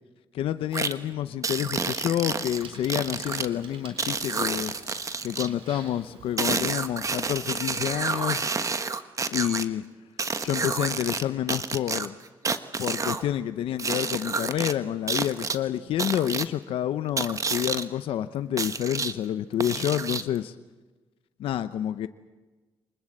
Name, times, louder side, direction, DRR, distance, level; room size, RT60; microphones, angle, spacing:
voice 1, 0.3-4.7 5.2-8.5 9.3-9.8 10.4-12.2 12.8-20.5 21.4-22.1, left 11 dB, 80° left, 11 dB, 0.8 m, -28 dB
sound 1, 0.7-0.9 1.4-3.5 4.0-5.5 6.4-9.6 10.2-11.2 11.5-13.2 13.8-14.7 15.1-15.6 16.0-16.5 17.2-17.8 18.6-19.1 19.6-20.4, right 4 dB, 35° right, 1.3 m, -29 dB
Bicycle, 2.4-8.5, right 5 dB, 80° right, 4.2 m, -50 dB
25.0 x 20.5 x 7.9 m, 1.2 s
cardioid pair, 70°, 9 cm